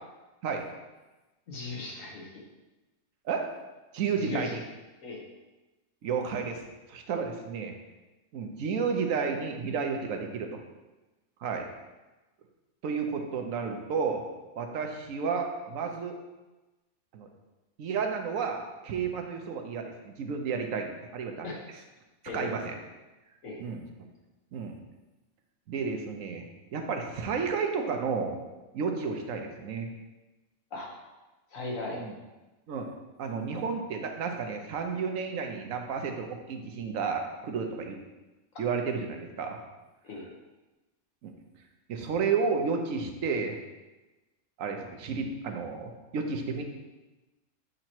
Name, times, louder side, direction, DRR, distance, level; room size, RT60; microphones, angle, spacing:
voice 1, 1.5-2.3 4.2-4.5 5.0-5.2 21.4-21.7 22.3-22.6 23.4-23.6 30.7-30.9 31.5-32.0 40.0-40.3, left 2 dB, 80° left, -2 dB, 1.6 m, -37 dB
voice 2, 3.9-4.6 6.0-6.6 6.9-7.7 8.3-10.6 11.4-11.7 12.8-14.2 14.5-16.2 17.1-17.3 17.8-21.5 22.3-22.8 23.6-23.8 24.5-24.8 25.7-26.5 26.7-28.4 28.7-29.9 31.9-32.1 32.7-32.9 33.2-38.0 38.6-39.6 41.2-41.3 41.9-43.6 44.6-46.6, right 5 dB, 85° right, 4 dB, 1.1 m, -32 dB
7.5 x 3.0 x 4.4 m, 1.1 s
omnidirectional pair, 1.4 m